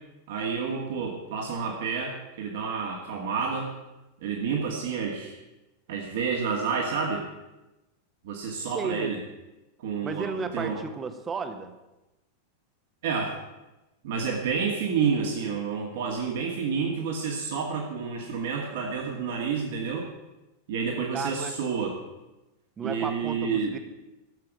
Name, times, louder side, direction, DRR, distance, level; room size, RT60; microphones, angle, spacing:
voice 1, 0.3-3.7 4.2-5.4 5.9-7.3 8.2-9.2 9.8-10.3 10.5-10.8 13.0-13.4 14.0-20.1 20.7-22.0 22.8-23.7, right 5 dB, 55° right, -1 dB, 2.3 m, -29 dB
voice 2, 8.7-9.1 10.0-11.7 21.1-21.5 22.8-23.8, right 5 dB, 20° right, 8 dB, 1.4 m, -33 dB
13.5 x 7.7 x 9.1 m, 1.0 s
figure-of-eight pair, 90°, 0 cm